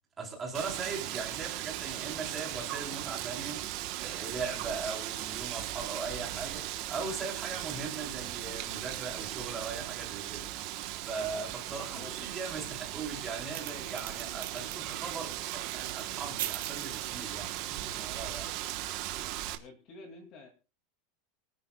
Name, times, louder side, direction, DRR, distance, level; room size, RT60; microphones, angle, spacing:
voice 1, 0.2-3.7 4.0-10.8 11.1-18.5, right 4 dB, 15° right, 3.8 m, -39 dB
Wind, 0.5-19.6, right 14 dB, 40° right, 1.2 m, -38 dB
voice 2, 11.7-12.1 18.4-18.5 19.5-20.5, left 3 dB, 35° left, 2.5 m, -50 dB
sound 1, 13.5-18.6, right 13 dB, 85° right, 2.4 m, -43 dB
24.0 x 10.5 x 2.3 m
supercardioid pair, 180°, 0 cm